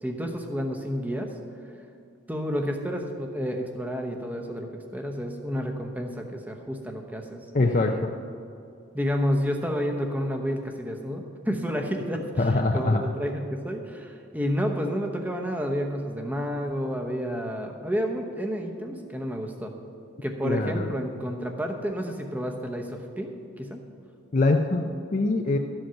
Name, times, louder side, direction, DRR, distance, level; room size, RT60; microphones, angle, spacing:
voice 1, 0.0-1.3 2.3-8.0 8.9-19.7 20.2-23.3 23.6-23.8, equal, 10° right, 3 dB, 0.9 m, -30 dB
voice 2, 7.5-8.1 12.4-13.0 20.4-20.9 24.3-25.6, left 2 dB, 40° left, 3 dB, 0.5 m, -23 dB
13.0 x 7.8 x 5.7 m, 2.6 s
head